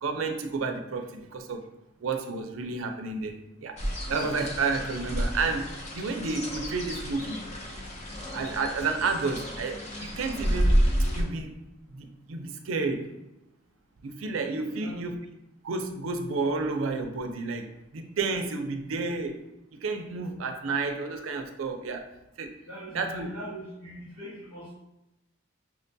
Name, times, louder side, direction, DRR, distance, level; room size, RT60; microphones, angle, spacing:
voice 1, 0.0-1.6 2.0-3.8 4.1-7.4 8.3-10.8 11.1-11.6 11.9-13.2 14.0-15.2 15.6-19.4 19.7-22.1 22.4-22.6 22.9-23.3, right 4 dB, 80° right, 6 dB, 0.5 m, -31 dB
sound 1, 3.8-11.2, equal, 35° left, 0.7 m, -30 dB
voice 2, 14.6-15.0 22.7-24.7, equal, 90° left, -9 dB, 1.1 m, -41 dB
5.9 x 2.2 x 2.6 m, 0.94 s
head